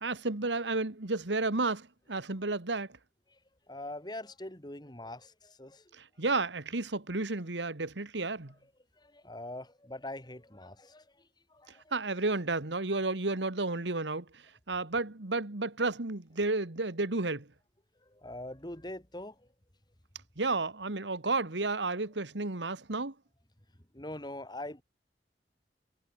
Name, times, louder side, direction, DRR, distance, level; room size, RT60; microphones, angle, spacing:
voice 1, 0.0-2.9 6.0-8.5 11.9-14.3 14.7-17.5 20.4-23.1, right 3 dB, 85° right, 1.9 m, -32 dB
voice 2, 3.7-5.9 9.0-11.9 18.1-19.5 23.9-24.8, left 1 dB, 25° left, 4.0 m, -43 dB
head